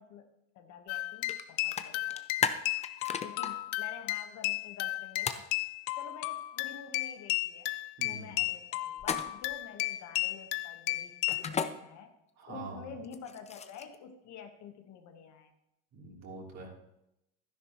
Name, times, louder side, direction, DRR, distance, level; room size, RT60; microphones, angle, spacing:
voice 1, 0.0-2.6 3.2-5.5 5.9-7.7 8.0-12.1 12.5-15.5, left 6 dB, 50° left, 6 dB, 1.3 m, -49 dB
sound 1, 0.9-11.5, left 19 dB, 75° left, 0.6 m, -34 dB
sound 2, 1.3-1.4 1.7-3.5 5.3-5.5 9.0-9.5 11.3-11.7 13.0-14.0, left 6 dB, 20° left, 0.5 m, -33 dB
voice 2, 8.0-8.4 12.4-12.9 15.9-16.7, right 3 dB, 45° right, -2 dB, 3.2 m, -44 dB
12.0 x 10.5 x 3.0 m, 0.84 s
supercardioid pair, 115°, 37 cm